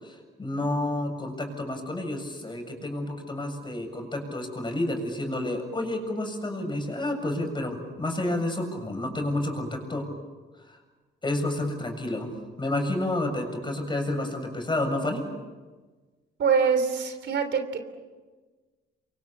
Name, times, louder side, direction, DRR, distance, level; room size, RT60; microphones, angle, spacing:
voice 1, 0.0-10.1 10.7-10.8 11.2-12.3 12.6-15.2, left 1 dB, 25° left, 4 dB, 7.3 m, -30 dB
voice 2, 16.4-17.8, right 6 dB, 60° right, 8 dB, 3.3 m, -24 dB
28.5 x 24.0 x 7.4 m, 1.3 s
cardioid pair, 90°, 20 cm